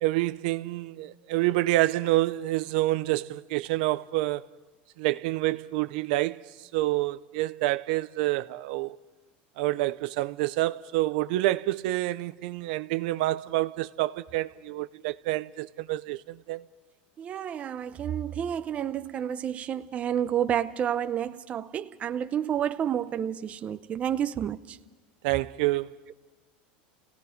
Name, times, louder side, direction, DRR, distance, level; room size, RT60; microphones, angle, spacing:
voice 1, 0.0-4.4 5.0-6.4 6.7-9.0 9.6-16.6 25.2-26.0, right 17 dB, 65° right, 0.6 m, -27 dB
voice 2, 17.2-24.8, right 9 dB, 25° right, 0.6 m, -30 dB
29.5 x 17.5 x 5.1 m
supercardioid pair, 150°, 5 cm